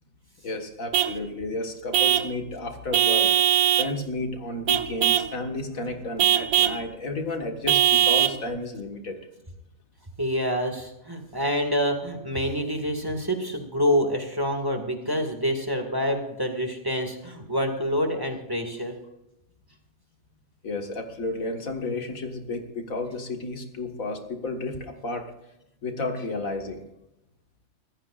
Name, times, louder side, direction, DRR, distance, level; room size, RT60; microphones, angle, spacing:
voice 1, 0.4-3.3 3.8-9.2 20.6-25.3 25.8-26.8, left 2 dB, 75° left, 4 dB, 2.1 m, -32 dB
Vehicle horn car horn honking / Truck, 0.9-1.2 1.9-2.3 2.9-3.9 4.7-5.3 6.2-6.8 7.7-8.4, right 11 dB, 85° right, 1.2 m, -21 dB
voice 2, 10.2-18.9, equal, 15° right, 3 dB, 2.0 m, -27 dB
25.0 x 15.0 x 2.5 m, 0.89 s
omnidirectional pair, 1.5 m